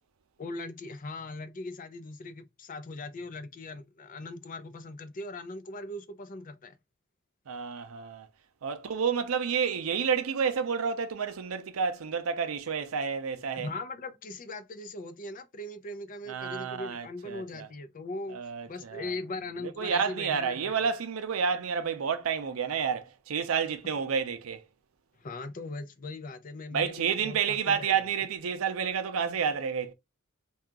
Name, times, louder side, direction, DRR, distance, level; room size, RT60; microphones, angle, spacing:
voice 1, 0.4-6.8 13.5-18.4 18.7-20.8 25.2-28.0, left 2 dB, 40° left, 0.5 m, -40 dB
voice 2, 7.5-8.3 8.6-13.7 16.3-17.7 18.3-19.1 19.6-24.6 26.7-29.9, right 6 dB, 80° right, 0.5 m, -30 dB
2.7 x 2.4 x 3.5 m
head